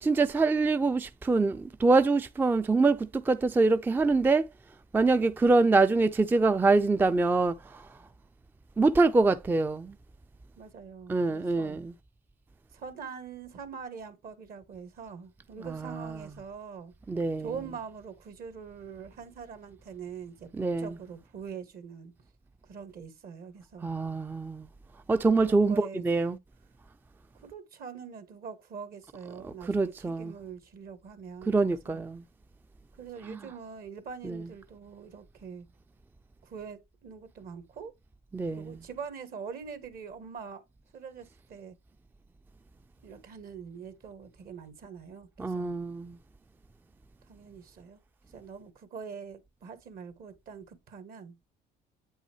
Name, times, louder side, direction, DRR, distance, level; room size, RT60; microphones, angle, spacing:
voice 1, 0.0-4.5 4.9-7.9 8.8-10.0 11.1-11.9 15.6-16.3 17.1-17.5 20.5-20.9 23.8-24.7 25.1-26.4 29.4-30.3 31.5-32.2 33.2-33.4 34.2-34.5 38.3-38.8 45.4-46.2, right 3 dB, 10° right, 0.4 m, -25 dB
voice 2, 10.6-11.8 12.7-16.9 17.4-22.1 22.7-23.9 25.4-26.0 27.4-32.0 33.0-35.7 36.4-37.9 38.5-40.6 40.9-41.7 43.0-45.7 47.3-48.0 48.3-51.3, right 6 dB, 60° right, 1.6 m, -43 dB
8.4 x 5.5 x 2.8 m
cardioid pair, 110°, 17 cm